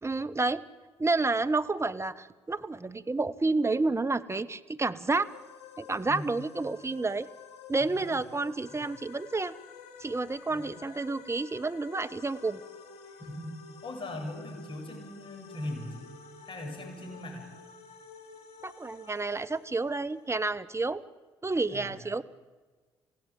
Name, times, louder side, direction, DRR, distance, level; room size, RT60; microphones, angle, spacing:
voice 1, 0.0-0.6 1.0-5.3 5.8-7.3 7.7-9.5 10.0-12.6 18.6-21.0 21.4-22.2, right 3 dB, 20° right, 13 dB, 1.3 m, -30 dB
sound 1, 5.2-20.6, left 6 dB, 65° left, 3.8 m, -51 dB
voice 2, 6.1-6.4 7.8-8.1 8.7-8.8 10.5-10.7 13.2-16.1 16.5-17.5 21.7-22.0, left 1 dB, 45° left, 2 dB, 7.8 m, -40 dB
27.5 x 16.5 x 9.2 m, 1.4 s
hypercardioid pair, 45°, 12 cm